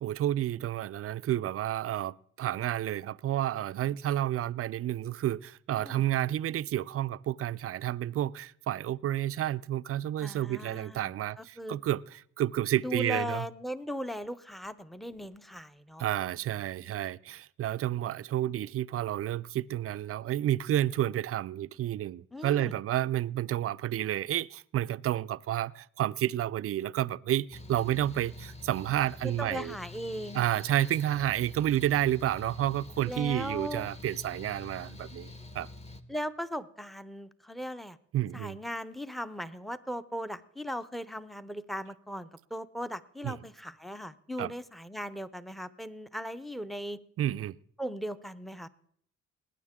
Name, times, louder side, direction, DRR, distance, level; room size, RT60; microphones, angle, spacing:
voice 1, 0.0-13.5 16.0-29.8 30.3-35.7 38.1-38.6 43.2-43.4 44.4-44.5 47.2-47.6, right 12 dB, 50° right, 0.4 m, -30 dB
voice 2, 10.2-11.8 12.8-16.1 22.3-22.7 29.2-30.4 33.0-33.9 36.1-38.0 38.3-47.0 47.8-48.7, equal, ahead, 0.6 m, -38 dB
Mechanical fan, 27.5-36.0, left 2 dB, 20° left, 1.0 m, -46 dB
21.0 x 9.6 x 3.6 m
cardioid pair, 90°, 30 cm